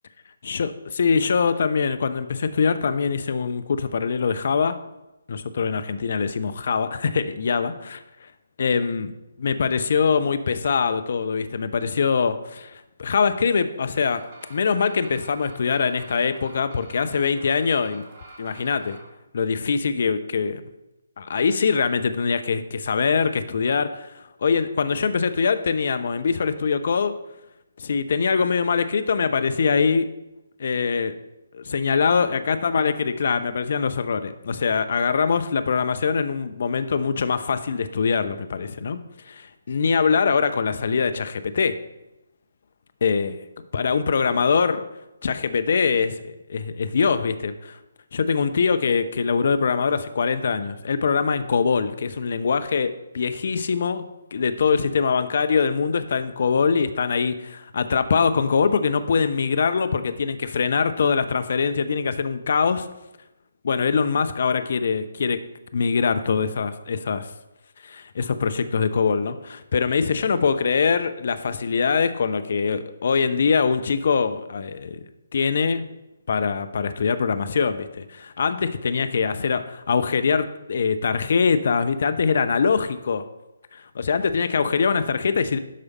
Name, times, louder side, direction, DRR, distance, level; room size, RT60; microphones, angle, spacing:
voice 1, 0.4-4.8 5.3-8.0 8.6-9.1 9.4-14.2 14.5-18.0 18.4-19.0 19.3-20.6 21.2-27.1 27.8-30.1 30.6-31.2 31.5-39.0 39.3-41.8 43.0-43.4 43.7-44.8 45.2-47.8 48.1-54.0 54.3-62.9 63.6-65.4 65.7-67.3 67.8-75.0 75.3-75.9 76.3-83.2 83.7-85.6, left 5 dB, 55° left, 11 dB, 0.7 m, -23 dB
sound 1, 13.9-19.1, right 2 dB, 30° right, 2.5 m, -47 dB
11.5 x 4.9 x 4.1 m, 0.94 s
figure-of-eight pair, 145°, 0 cm